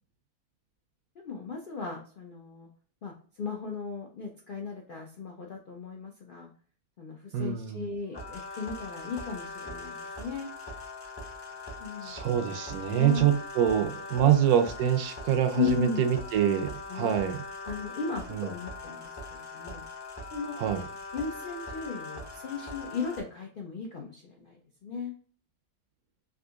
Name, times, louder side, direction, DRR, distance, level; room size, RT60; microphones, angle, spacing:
voice 1, 1.2-2.7 3.0-6.5 7.0-10.5 11.8-12.2 12.9-13.3 14.2-14.3 15.5-16.0 16.9-17.2 17.6-19.9 20.3-20.6 21.1-25.1, left 5 dB, 75° left, 0 dB, 0.4 m, -36 dB
voice 2, 7.3-7.8 12.0-17.4 18.3-18.5 20.6-20.9, right 9 dB, 75° right, 7 dB, 1.1 m, -25 dB
sound 1, 8.1-23.2, left 2 dB, 25° left, 0.6 m, -41 dB
3.7 x 2.6 x 2.4 m, 0.43 s
omnidirectional pair, 1.7 m